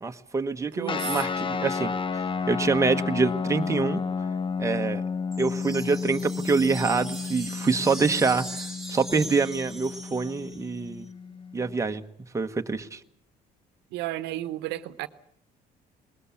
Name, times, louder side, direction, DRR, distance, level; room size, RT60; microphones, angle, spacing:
voice 1, 0.0-4.0 4.6-5.0 5.4-11.1 11.5-12.0 12.3-13.0, right 4 dB, 15° right, 1.2 m, -26 dB
voice 2, 0.7-1.2 13.9-15.1, right 15 dB, 90° right, 1.0 m, -33 dB
sound 1, 0.9-11.8, left 5 dB, 30° left, 0.8 m, -32 dB
sound 2, 5.3-10.8, right 2 dB, ahead, 2.9 m, -40 dB
20.5 x 20.0 x 8.4 m
cardioid pair, 110°, 17 cm